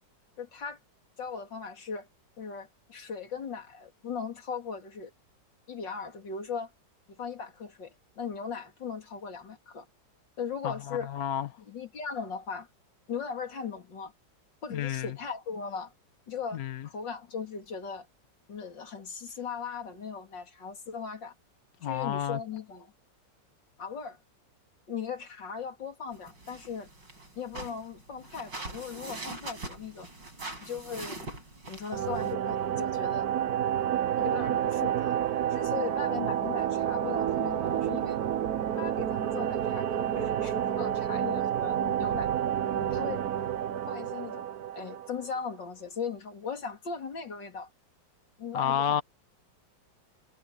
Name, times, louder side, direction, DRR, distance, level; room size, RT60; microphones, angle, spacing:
voice 1, 0.4-0.8 1.2-2.1 2.4-5.1 5.7-6.7 7.1-9.9 10.4-11.1 11.6-12.7 13.1-14.1 14.6-15.9 16.3-18.1 18.5-21.3 21.8-22.9 23.8-24.2 24.9-26.9 27.4-30.1 30.6-31.2 31.7-33.3 34.2-35.2 35.5-38.2 38.8-42.3 42.7-43.2 43.9-44.5 44.7-47.7 48.4-49.0, left 6 dB, 80° left, 3.4 m, -38 dB
voice 2, 10.6-11.5 14.7-15.1 16.5-16.8 21.8-22.4 48.5-49.0, left 9 dB, 60° left, 1.4 m, -30 dB
sound 1, 26.1-32.3, right 2 dB, 80° right, 7.5 m, -43 dB
sound 2, 31.9-45.5, right 10 dB, 60° right, 1.3 m, -29 dB
omnidirectional pair, 1.9 m